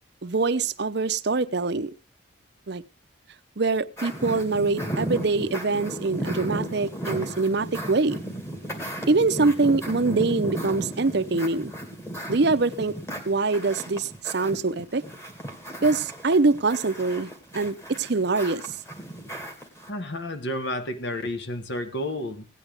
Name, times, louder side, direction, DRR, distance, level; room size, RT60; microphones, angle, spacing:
voice 1, 0.2-1.9 2.7-2.8 3.6-8.2 9.1-11.7 12.3-12.9 13.3-15.0 15.8-18.6, right 3 dB, 55° right, 0.7 m, -24 dB
sound 1, 4.0-19.9, right 1 dB, 15° left, 2.1 m, -35 dB
voice 2, 19.9-22.5, left 1 dB, 55° left, 1.3 m, -31 dB
17.0 x 9.8 x 3.4 m
head